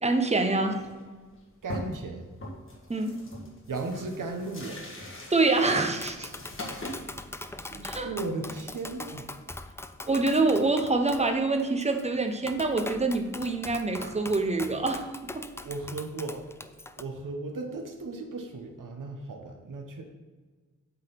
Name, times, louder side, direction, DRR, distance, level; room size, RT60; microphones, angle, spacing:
voice 1, 0.0-0.8 2.9-3.2 5.3-6.3 7.7-8.1 10.0-15.1 15.3-15.5, right 3 dB, 20° right, 4 dB, 0.9 m, -26 dB
sound 1, 0.7-1.0 1.3-1.4 1.7-2.1 2.4-7.0, left 1 dB, 40° left, 1.7 m, -41 dB
voice 2, 1.6-2.3 3.7-4.8 8.0-9.3 15.6-16.5 17.0-20.0, right 3 dB, 75° right, 3 dB, 1.1 m, -36 dB
Tap, 5.8-17.0, left 2 dB, 10° left, 0.3 m, -42 dB
8.0 x 4.0 x 5.9 m, 1.4 s
wide cardioid pair, 90°, 32 cm